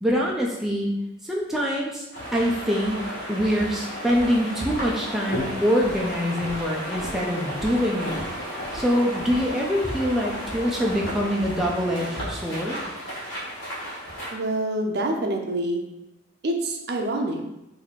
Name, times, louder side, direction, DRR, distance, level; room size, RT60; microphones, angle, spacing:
voice 1, 0.0-0.9 1.2-2.0 2.3-3.0 3.3-8.2 8.7-12.8, equal, ahead, -3 dB, 0.4 m, -24 dB
sound 1, 2.1-14.3, equal, 80° left, 1.3 m, -33 dB
voice 2, 14.3-15.8 16.4-17.4, right 1 dB, 55° right, 2 dB, 0.5 m, -26 dB
3.0 x 2.7 x 4.0 m, 0.93 s
head